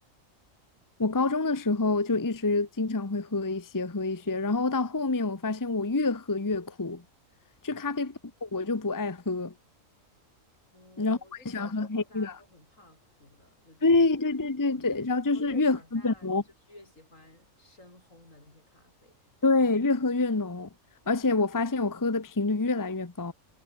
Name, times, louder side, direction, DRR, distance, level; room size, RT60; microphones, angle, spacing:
voice 1, 1.0-7.0 7.6-9.5 11.0-11.2 11.4-12.3 13.8-16.4 19.4-20.7 21.1-23.3, left 3 dB, 15° left, 0.9 m, -27 dB
voice 2, 7.7-8.1 10.7-14.1 14.4-14.9 15.3-16.3 16.7-19.4, left 1 dB, 75° left, 7.7 m, -54 dB
omnidirectional pair, 1.4 m